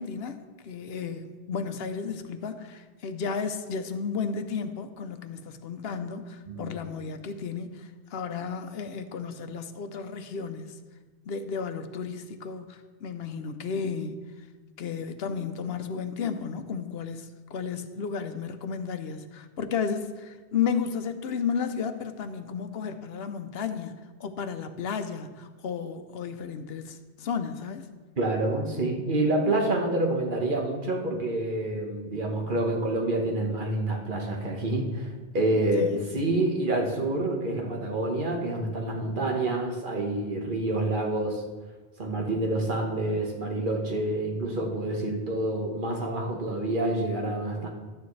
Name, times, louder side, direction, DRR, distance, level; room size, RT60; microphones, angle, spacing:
voice 1, 0.0-10.8 11.3-14.2 14.8-27.9 35.7-36.0, left 6 dB, 75° left, 9 dB, 0.9 m, -33 dB
voice 2, 28.2-35.1 35.3-41.4 42.0-47.7, right 2 dB, 55° right, 1 dB, 1.5 m, -27 dB
12.0 x 9.4 x 3.2 m, 1.3 s
omnidirectional pair, 1.0 m